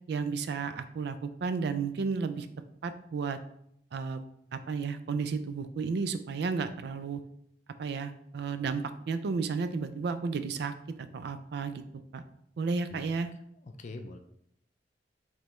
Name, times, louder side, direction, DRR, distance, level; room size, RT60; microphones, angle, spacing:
voice 1, 0.1-2.5 2.8-3.4 3.9-4.2 4.5-7.2 7.8-10.7 11.0-11.8 12.1-12.2 12.6-13.3, right 5 dB, 65° right, 10 dB, 0.4 m, -32 dB
voice 2, 13.5-14.2, left 2 dB, 45° left, 7 dB, 0.4 m, -43 dB
5.1 x 3.3 x 3.0 m, 0.72 s
head